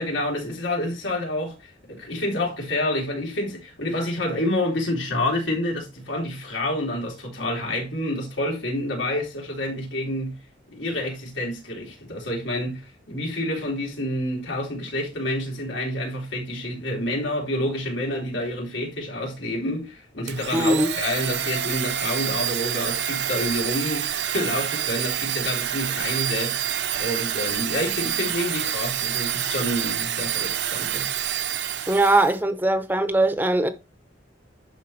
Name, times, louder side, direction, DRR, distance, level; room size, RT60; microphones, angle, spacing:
voice 1, 0.0-10.4 10.7-26.7 27.0-31.1, left 1 dB, 85° left, 3.5 m, -28 dB
Domestic sounds home sounds, 20.3-32.4, right 10 dB, 65° right, 0.8 m, -27 dB
voice 2, 20.5-20.9 31.9-33.7, right 2 dB, 10° right, 0.7 m, -20 dB
12.0 x 4.5 x 3.2 m
head